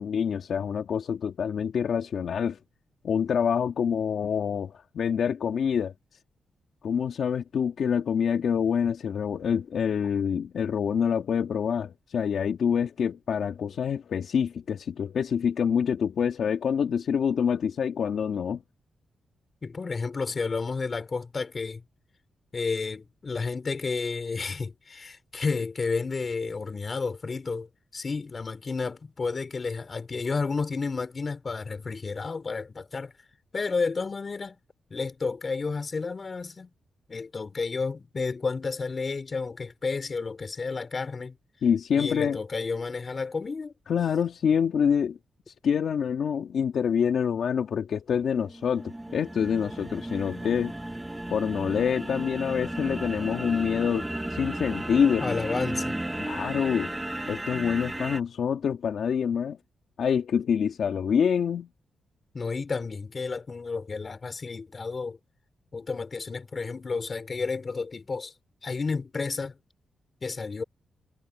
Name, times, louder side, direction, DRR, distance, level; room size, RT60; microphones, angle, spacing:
voice 1, 0.0-2.6 3.0-5.9 6.8-18.6 41.6-42.4 43.9-45.2 45.6-50.7 51.3-55.3 56.2-56.9 57.3-59.6 60.0-61.7, left 7 dB, 70° left, 2.2 m, -26 dB
voice 2, 19.6-21.8 22.5-33.1 33.5-34.6 34.9-36.7 37.1-41.4 42.0-43.7 55.2-56.0 62.3-65.2 65.7-68.3 68.6-69.6 70.2-70.6, left 4 dB, 40° left, 4.1 m, -31 dB
sound 1, 48.3-58.2, right 1 dB, 10° right, 1.8 m, -34 dB
cardioid pair, 95°, 0 cm